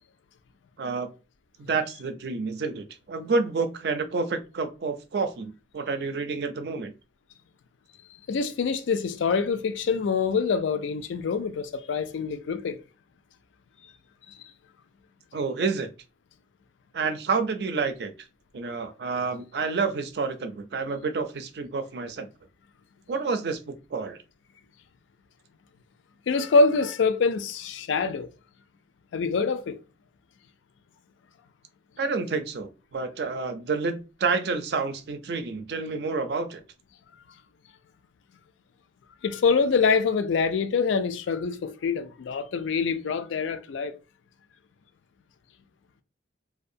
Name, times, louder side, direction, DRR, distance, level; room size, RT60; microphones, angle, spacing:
voice 1, 0.8-1.1 1.6-6.9 15.3-15.9 16.9-18.1 18.5-22.3 23.1-24.2 32.0-36.6, right 4 dB, 60° right, 0.4 m, -29 dB
voice 2, 8.3-12.8 26.3-28.3 29.1-29.8 39.2-44.0, left 4 dB, 85° left, 0.4 m, -25 dB
2.5 x 2.2 x 2.6 m
head